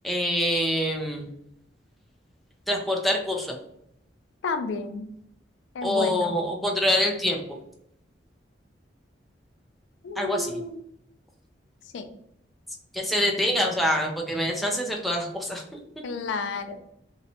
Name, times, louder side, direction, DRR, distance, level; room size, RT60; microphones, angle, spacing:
voice 1, 0.0-1.3 2.7-3.6 5.8-7.4 10.2-10.6 12.9-15.8, left 1 dB, ahead, 0 dB, 0.3 m, -25 dB
voice 2, 4.4-5.1 5.8-6.3 10.0-10.8 11.9-12.1 16.0-16.8, left 4 dB, 80° left, 8 dB, 0.3 m, -31 dB
2.7 x 2.1 x 2.6 m, 0.75 s
head